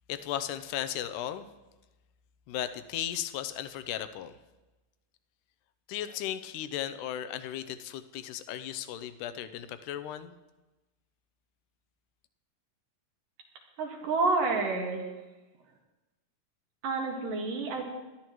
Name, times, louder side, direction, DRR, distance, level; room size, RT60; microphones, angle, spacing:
voice 1, 0.1-1.5 2.5-4.3 5.9-10.3, left 11 dB, 80° left, 12 dB, 2.0 m, -36 dB
voice 2, 13.8-15.0 16.8-17.9, right 3 dB, 85° right, 0 dB, 3.5 m, -29 dB
20.0 x 12.5 x 3.1 m, 1.1 s
omnidirectional pair, 3.8 m